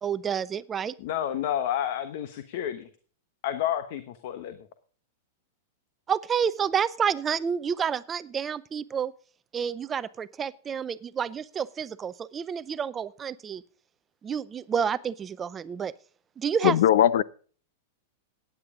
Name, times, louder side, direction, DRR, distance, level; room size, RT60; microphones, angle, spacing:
voice 1, 0.0-0.9 6.1-9.1 9.5-13.6 14.2-15.9 16.4-16.8, right 7 dB, 20° right, 16 dB, 0.5 m, -29 dB
voice 2, 1.0-2.9 3.4-4.6, left 10 dB, 55° left, 10 dB, 1.1 m, -30 dB
voice 3, 16.6-17.2, left 11 dB, 70° left, 19 dB, 0.7 m, -19 dB
15.5 x 9.6 x 3.7 m, 0.41 s
supercardioid pair, 145°, 0 cm